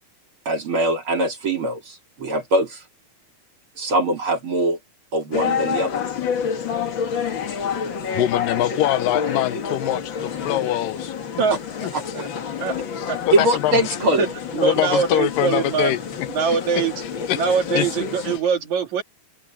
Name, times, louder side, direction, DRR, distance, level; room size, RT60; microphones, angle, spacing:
voice 1, 0.4-2.8 3.8-4.8 5.1-6.0 11.9-12.0 13.3-14.3 14.9-15.0, right 1 dB, 35° right, 3.4 m, -22 dB
sound 1, 5.3-18.4, left 7 dB, 45° left, 1.7 m, -28 dB
voice 2, 8.1-11.4 11.8-11.9 13.0-14.0 14.6-16.8 17.3-17.4 17.7-17.9, left 14 dB, 75° left, 2.3 m, -24 dB
voice 3, 14.5-16.0 16.3-16.9 17.4-19.0, right 6 dB, 55° right, 3.5 m, -22 dB
open air
omnidirectional pair, 4.3 m